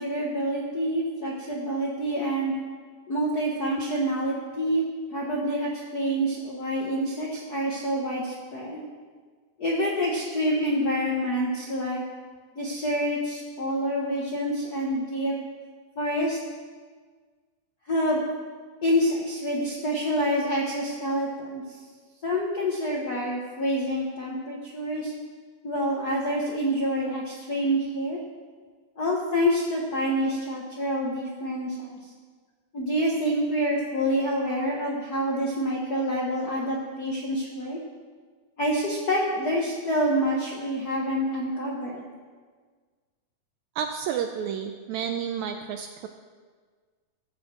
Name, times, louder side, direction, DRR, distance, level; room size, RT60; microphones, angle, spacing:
voice 1, 0.0-2.5 3.1-4.8 5.1-8.8 9.6-12.0 12.5-15.3 16.0-16.4 17.9-18.2 18.8-21.8 22.2-25.1 25.6-28.2 29.0-32.0 32.7-37.8 38.6-42.0, equal, 80° left, -3 dB, 0.8 m, -27 dB
voice 2, 43.8-46.1, right 8 dB, 85° right, 6 dB, 1.7 m, -31 dB
14.5 x 6.2 x 7.5 m, 1.5 s
omnidirectional pair, 3.8 m